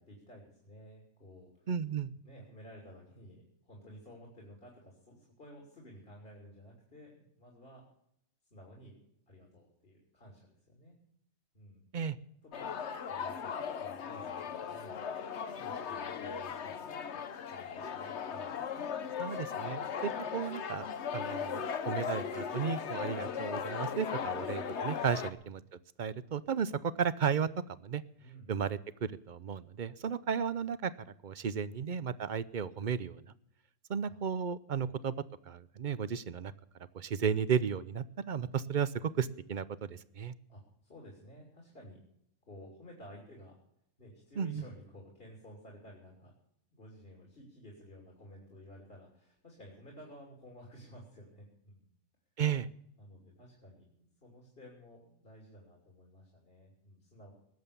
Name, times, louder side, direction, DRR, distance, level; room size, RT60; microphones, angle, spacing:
voice 1, 0.0-1.7 2.1-7.8 8.5-9.0 9.3-11.0 11.5-11.8 12.4-12.7 13.1-15.0 15.5-17.2 17.5-18.6 28.2-28.5 31.4-31.8 34.1-34.2 40.5-42.0 42.4-43.6 44.0-46.3 46.7-51.9 53.0-57.3, equal, 45° left, -2 dB, 3.5 m, -54 dB
voice 2, 1.7-2.1 11.9-12.2 19.2-20.9 21.1-25.6 26.0-27.5 27.8-28.0 28.5-30.9 31.2-33.2 33.9-35.1 35.5-36.5 36.9-40.3 44.4-44.6 52.4-52.7, right 7 dB, 50° right, 16 dB, 0.6 m, -34 dB
sound 1, 12.5-25.3, left 7 dB, 60° left, 1.2 m, -38 dB
19.5 x 7.9 x 6.9 m, 0.74 s
omnidirectional pair, 1.4 m